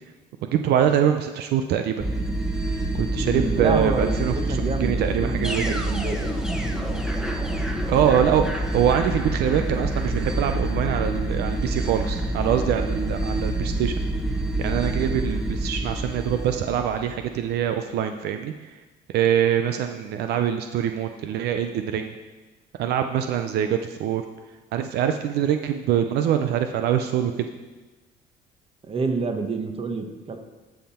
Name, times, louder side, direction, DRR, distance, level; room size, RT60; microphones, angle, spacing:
voice 1, 0.4-2.0 3.0-5.8 7.9-14.0 14.6-18.7 19.1-22.1 22.8-24.2 24.7-27.3, right 9 dB, 75° right, 7 dB, 0.6 m, -24 dB
sound 1, 2.0-17.4, right 1 dB, 5° right, 1.1 m, -27 dB
voice 2, 3.2-6.2 8.3-8.5 28.8-30.4, right 4 dB, 35° right, 6 dB, 1.1 m, -28 dB
13.0 x 5.7 x 4.3 m, 1.2 s
cardioid pair, 110°, 17 cm